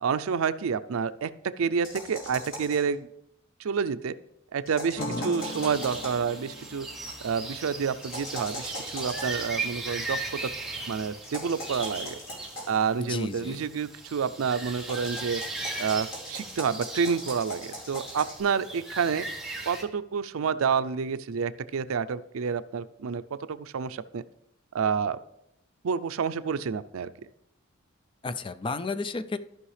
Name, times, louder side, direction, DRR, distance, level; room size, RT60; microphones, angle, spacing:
voice 1, 0.0-1.3 1.6-3.1 3.6-4.1 4.5-6.9 7.2-10.5 10.9-12.2 12.7-15.4 15.8-19.3 19.7-23.2 23.5-24.2 24.7-25.2 25.8-27.1, right 6 dB, 85° right, 13 dB, 0.4 m, -29 dB
sound 1, 1.8-2.9 4.6-6.3 8.0-9.5 11.2-12.9 14.8-18.4, equal, 80° left, 3.3 m, -40 dB
sound 2, 5.0-10.5, equal, 65° left, 0.6 m, -42 dB
voice 2, 5.0-5.3 13.0-13.6 28.2-29.4, left 3 dB, 25° left, 12 dB, 0.4 m, -33 dB
sound 3, 5.4-19.8, right 2 dB, ahead, 1.3 m, -38 dB
14.0 x 5.6 x 3.3 m, 0.81 s
head